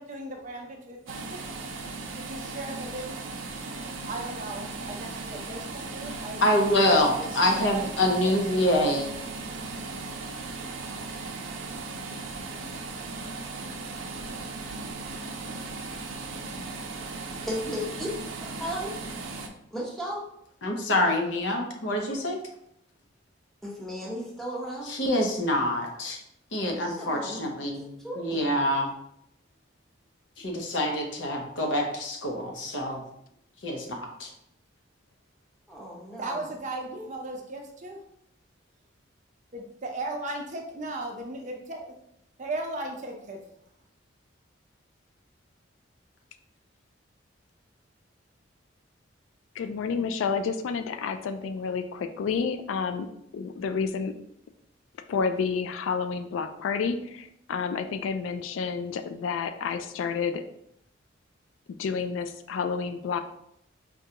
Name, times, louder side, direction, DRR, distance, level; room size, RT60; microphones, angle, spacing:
voice 1, 0.0-1.4 2.3-3.1 4.1-6.4 7.3-7.9 8.2-8.6 36.2-38.0 39.5-41.9 42.4-43.4, right 2 dB, 40° right, 2 dB, 0.5 m, -36 dB
sound 1, 1.1-19.5, right 3 dB, 85° right, 0.5 m, -37 dB
voice 2, 6.2-9.1 20.6-22.4 24.9-26.2 26.5-27.8 28.2-28.9 30.4-33.0 33.6-34.3, left 1 dB, 65° left, 2 dB, 0.7 m, -26 dB
voice 3, 17.4-18.1 18.4-18.9 19.7-20.2 23.6-24.9 27.0-27.5 27.8-28.5 35.7-36.4, equal, ahead, -5 dB, 0.8 m, -35 dB
voice 4, 49.6-53.1 53.3-54.1 55.1-60.4 61.8-63.2, left 5 dB, 80° left, 8 dB, 0.3 m, -30 dB
4.9 x 2.3 x 2.8 m, 0.75 s
head